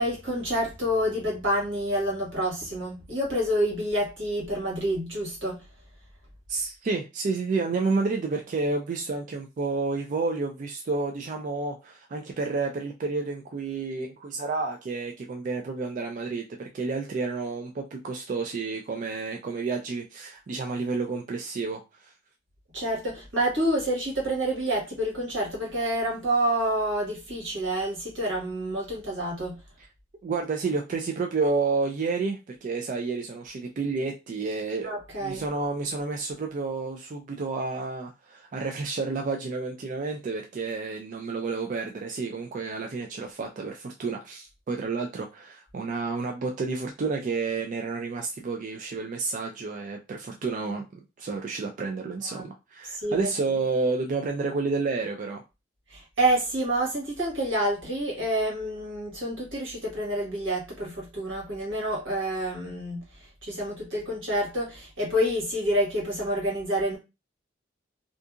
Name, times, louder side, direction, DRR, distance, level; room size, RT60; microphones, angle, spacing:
voice 1, 0.0-5.6 22.7-29.6 34.8-35.4 52.3-52.5 52.9-53.3 55.9-67.0, right 1 dB, 85° right, 1.4 m, -28 dB
voice 2, 6.5-22.1 30.2-34.9 35.2-55.4, right 4 dB, 40° right, 0.3 m, -30 dB
2.6 x 2.5 x 2.4 m
head